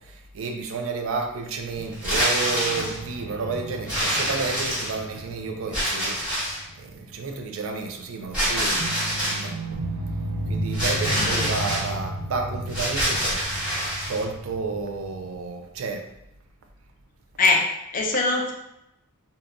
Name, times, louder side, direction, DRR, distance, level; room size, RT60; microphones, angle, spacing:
voice 1, 0.0-6.2 6.7-9.8 10.5-13.6 14.1-16.0, right 4 dB, 65° right, 4 dB, 0.4 m, -31 dB
sound 1, 1.8-7.2 7.5-7.6 8.8-15.4, right 1 dB, 80° right, 0.8 m, -34 dB
sound 2, 1.9-3.0 3.9-5.1 5.7-6.7 8.3-9.5 10.7-11.9 12.7-14.2, equal, 5° right, 1.2 m, -26 dB
voice 2, 11.1-11.5 17.4-18.5, left 3 dB, 35° left, 1 dB, 0.4 m, -23 dB
2.7 x 2.1 x 2.5 m, 0.84 s
head